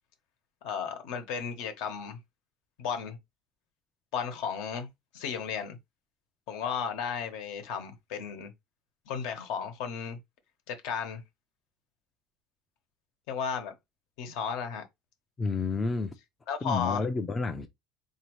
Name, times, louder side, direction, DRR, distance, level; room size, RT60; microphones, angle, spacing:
voice 1, 0.6-2.2 2.8-3.2 4.1-4.9 5.1-5.8 6.5-8.5 9.1-10.2 10.7-11.2 13.3-13.7 14.2-14.8 16.5-17.0, left 7 dB, 70° left, 1.1 m, -34 dB
voice 2, 15.4-16.1 16.6-17.7, left 4 dB, 15° left, 0.4 m, -30 dB
4.0 x 2.7 x 3.1 m
cardioid pair, 165°, 0 cm